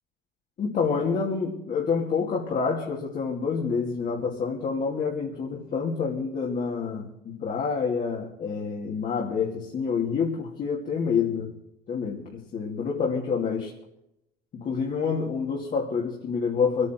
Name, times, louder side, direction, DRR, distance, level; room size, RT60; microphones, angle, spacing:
voice 1, 0.6-11.6 11.9-13.7 14.5-16.9, left 5 dB, 50° left, -2 dB, 2.8 m, -28 dB
25.0 x 9.6 x 4.6 m, 0.83 s
cardioid pair, 110°, 17 cm